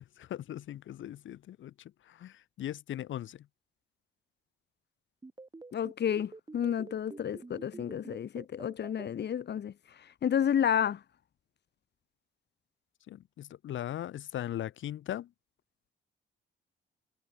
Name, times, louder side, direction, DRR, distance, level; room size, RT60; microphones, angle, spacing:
voice 1, 0.0-1.7 2.1-3.4 13.1-15.3, left 12 dB, 75° left, 4.4 m, -39 dB
sound 1, 5.2-9.1, right 3 dB, 20° right, 4.9 m, -46 dB
voice 2, 5.7-9.7 10.2-11.0, left 9 dB, 60° left, 4.2 m, -30 dB
cardioid pair, 90°, 20 cm